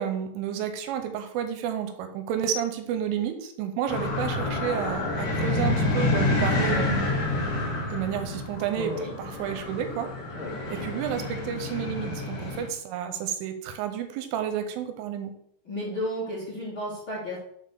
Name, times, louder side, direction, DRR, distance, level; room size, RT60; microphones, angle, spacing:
voice 1, 0.0-7.2 7.9-10.1 10.7-15.3, right 9 dB, 80° right, 7 dB, 3.4 m, -31 dB
sound 1, 3.9-12.7, left 2 dB, 70° left, 1.5 m, -28 dB
voice 2, 8.7-9.1 10.3-10.8 15.6-17.4, equal, 55° left, -7 dB, 1.4 m, -33 dB
7.1 x 4.4 x 6.7 m, 0.68 s
omnidirectional pair, 5.7 m